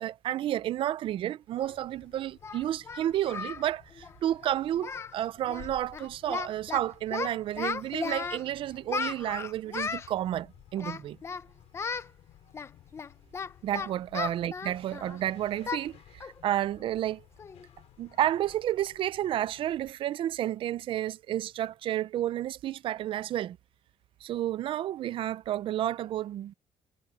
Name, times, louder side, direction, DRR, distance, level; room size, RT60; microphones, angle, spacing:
voice 1, 0.0-11.2 13.6-17.2 18.0-23.6 24.2-26.5, right 12 dB, 55° right, 0.5 m, -31 dB
sound 1, 1.6-19.9, left 13 dB, 75° left, 5.4 m, -56 dB
Singing, 1.6-1.7 2.4-3.6 3.9-4.1 4.4-4.5 4.8-5.2 5.4-5.7 5.9-6.8 7.1-8.4 8.9-10.1 10.8-11.4 11.7-12.1 12.5-15.2 15.7-15.9 16.2-16.4 16.8-16.9 17.4-17.7, left 5 dB, 25° left, 0.6 m, -35 dB
cardioid pair, 175°, 11 cm